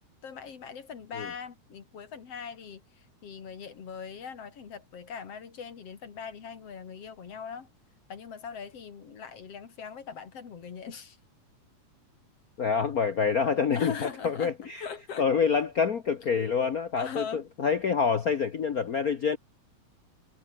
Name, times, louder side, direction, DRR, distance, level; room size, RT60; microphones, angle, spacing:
voice 1, 0.2-7.7 8.1-11.2 13.7-15.5 16.9-17.4, left 6 dB, 55° left, 3.2 m, -41 dB
voice 2, 12.6-13.9 14.2-14.8 15.2-19.4, left 6 dB, 90° left, 0.7 m, -26 dB
omnidirectional pair, 3.4 m